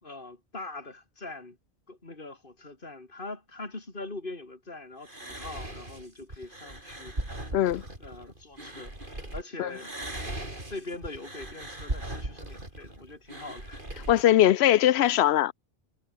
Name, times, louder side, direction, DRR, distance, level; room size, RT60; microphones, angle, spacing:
voice 1, 0.0-1.6 1.9-7.6 8.0-9.9 10.7-13.8, left 2 dB, 55° left, 3.8 m, -42 dB
sound 1, 5.0-9.4 9.7-14.2, right 1 dB, 55° right, 6.1 m, -38 dB
voice 2, 7.5-7.8 9.6-9.7 14.1-15.5, left 12 dB, 90° left, 0.8 m, -21 dB
omnidirectional pair, 1.0 m